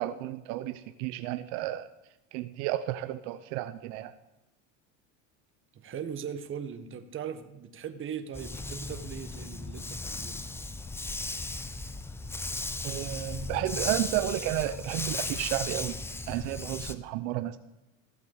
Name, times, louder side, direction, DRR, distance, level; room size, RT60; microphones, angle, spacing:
voice 1, 0.0-1.9 2.3-4.1 12.8-16.0 16.3-17.6, right 14 dB, 70° right, 11 dB, 0.8 m, -32 dB
voice 2, 5.7-10.4, right 8 dB, 30° right, 9 dB, 1.3 m, -39 dB
Dog, 8.3-16.9, left 3 dB, 5° left, 0.5 m, -36 dB
15.0 x 8.1 x 7.2 m, 0.92 s
supercardioid pair, 115°, 39 cm